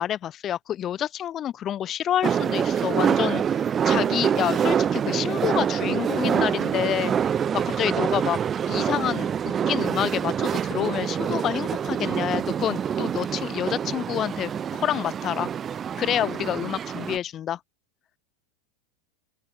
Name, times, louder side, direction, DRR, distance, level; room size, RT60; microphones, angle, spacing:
voice 1, 0.0-7.2 7.5-8.4 8.7-15.5 16.0-17.6, left 11 dB, 30° left, 3.6 m, -28 dB
sound 1, 2.2-17.2, right 8 dB, 25° right, 4.0 m, -26 dB
open air
figure-of-eight pair, 85°, 0 cm